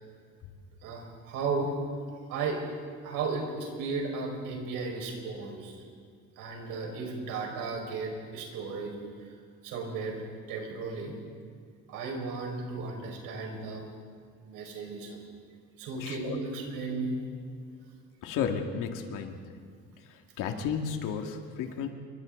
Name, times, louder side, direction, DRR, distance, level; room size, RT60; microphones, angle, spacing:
voice 1, 0.8-1.7 2.3-2.6 3.0-5.8 6.4-9.0 9.6-10.2 10.5-11.1 11.9-13.9 14.4-15.2 15.8-17.4, right 4 dB, 90° right, 1 dB, 5.5 m, -35 dB
voice 2, 16.0-16.4 18.2-19.5 20.1-21.9, left 7 dB, 80° left, 4 dB, 2.4 m, -33 dB
28.5 x 24.0 x 4.0 m, 2.1 s
cardioid pair, 165°, 32 cm